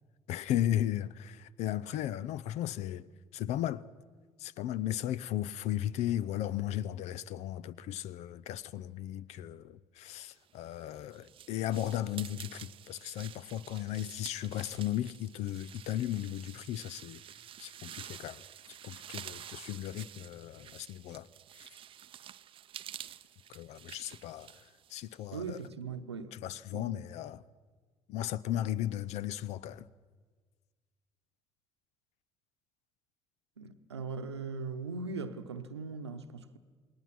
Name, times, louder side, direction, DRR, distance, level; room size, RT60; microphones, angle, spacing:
voice 1, 0.3-3.1 3.3-3.8 4.4-17.2 17.6-18.4 18.8-21.3 21.6-21.7 23.5-24.5 24.9-25.6 26.3-27.4 28.1-29.9, left 12 dB, 55° left, 0.6 m, -35 dB
sound 1, 10.5-25.7, right 10 dB, 40° right, 0.6 m, -49 dB
voice 2, 25.3-26.4 26.7-27.0 33.6-36.6, right 4 dB, 85° right, 1.0 m, -40 dB
28.5 x 20.0 x 6.0 m
figure-of-eight pair, 55°, 14 cm